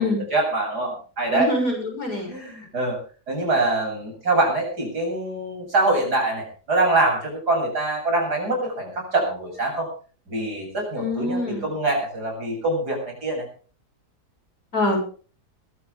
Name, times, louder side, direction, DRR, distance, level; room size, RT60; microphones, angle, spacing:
voice 1, 0.0-1.5 2.3-3.0 3.3-9.9 10.3-13.5, right 2 dB, 80° right, 1 dB, 8.3 m, -24 dB
voice 2, 1.3-2.3 11.0-11.6 14.7-15.0, left 2 dB, 60° left, 1 dB, 7.8 m, -24 dB
21.5 x 14.0 x 3.7 m, 0.39 s
omnidirectional pair, 1.7 m